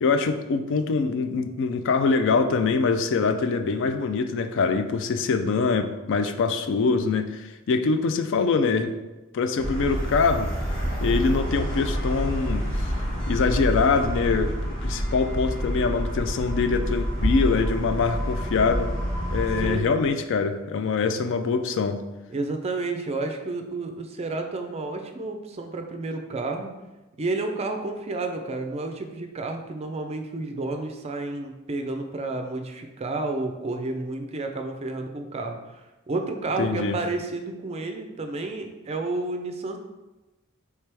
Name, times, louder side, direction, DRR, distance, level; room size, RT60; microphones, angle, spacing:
voice 1, 0.0-8.9 9.3-10.5 11.0-12.9 13.3-14.5 14.8-18.9 19.3-22.0 36.6-37.0, left 4 dB, 60° left, 8 dB, 0.3 m, -24 dB
sound 1, 9.6-19.7, equal, 20° left, 1.3 m, -27 dB
voice 2, 19.6-20.0 22.3-26.7 27.2-35.6 36.1-39.8, right 2 dB, 30° right, 5 dB, 0.4 m, -31 dB
4.6 x 3.3 x 3.3 m, 1.1 s
head